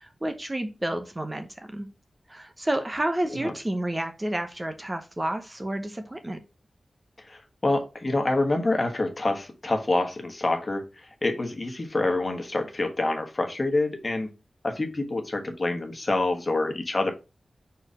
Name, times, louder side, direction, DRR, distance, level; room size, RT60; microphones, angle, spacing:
voice 1, 0.0-1.9 2.3-6.4, right 1 dB, 20° right, 7 dB, 0.8 m, -30 dB
voice 2, 7.3-10.8 11.2-14.3 14.6-17.1, left 2 dB, 35° left, 4 dB, 1.4 m, -26 dB
4.5 x 4.3 x 4.9 m, 0.29 s
wide cardioid pair, 75°, 0 cm